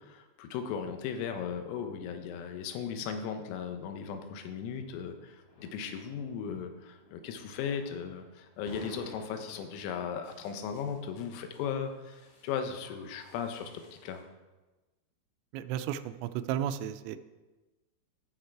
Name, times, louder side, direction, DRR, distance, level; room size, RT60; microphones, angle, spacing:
voice 1, 0.0-14.2, left 7 dB, 90° left, 6 dB, 3.6 m, -37 dB
sound 1, 0.9-14.2, left 1 dB, 65° left, 6.0 m, -55 dB
voice 2, 15.5-17.2, right 10 dB, 85° right, 11 dB, 2.6 m, -33 dB
14.0 x 6.4 x 4.6 m, 1.2 s
omnidirectional pair, 5.8 m